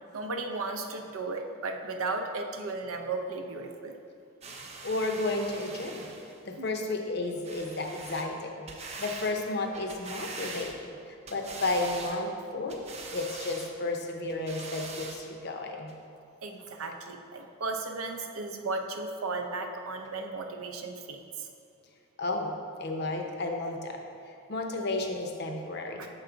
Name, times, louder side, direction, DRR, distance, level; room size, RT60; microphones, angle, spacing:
voice 1, 0.1-4.0 6.6-6.7 16.4-21.5, right 3 dB, 85° right, 4 dB, 0.6 m, -35 dB
sound 1, 4.4-6.4 7.4-8.3 8.7-9.3 9.7-10.9 11.3-12.2 12.7-13.7 14.3-15.2 15.9-16.0, right 3 dB, 30° right, 0.5 m, -42 dB
voice 2, 4.8-6.1 6.4-8.7 9.0-12.8 13.1-15.9 22.2-22.5 22.8-24.0 24.5-26.1, left 2 dB, 50° left, 3 dB, 0.6 m, -32 dB
6.5 x 4.6 x 3.8 m, 2.4 s
head